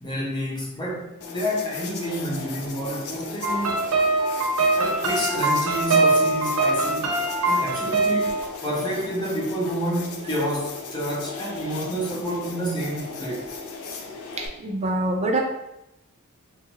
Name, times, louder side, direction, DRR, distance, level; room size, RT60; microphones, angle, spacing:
voice 1, 0.0-3.8 4.7-7.1 7.5-8.4 8.6-13.5, equal, 20° left, -4 dB, 0.7 m, -29 dB
sound 1, 1.2-14.5, left 4 dB, 75° left, 0.5 m, -37 dB
sound 2, 3.4-8.4, right 2 dB, 80° right, 0.7 m, -22 dB
voice 2, 14.4-15.4, right 2 dB, 30° right, 1 dB, 0.4 m, -25 dB
3.0 x 2.4 x 3.0 m, 0.88 s
head